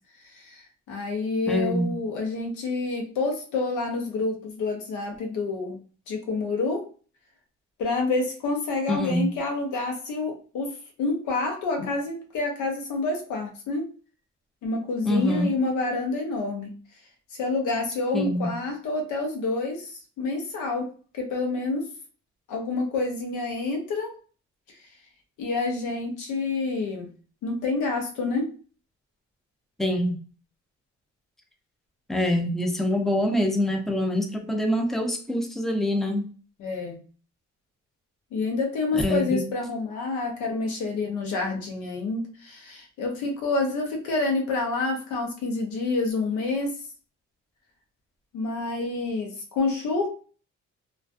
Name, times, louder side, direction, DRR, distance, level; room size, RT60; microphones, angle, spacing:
voice 1, 0.3-5.8 6.1-6.8 7.8-10.7 11.0-13.9 14.6-16.7 17.4-21.8 22.5-24.1 25.4-27.1 27.4-28.5 36.6-37.0 38.3-46.8 48.3-50.1, left 3 dB, 90° left, 2 dB, 0.8 m, -28 dB
voice 2, 1.5-1.9 8.9-9.3 15.0-15.5 18.1-18.5 29.8-30.2 32.1-36.3 38.9-39.4, left 1 dB, ahead, 4 dB, 0.5 m, -25 dB
2.4 x 2.1 x 2.5 m, 0.39 s
cardioid pair, 80°, 30 cm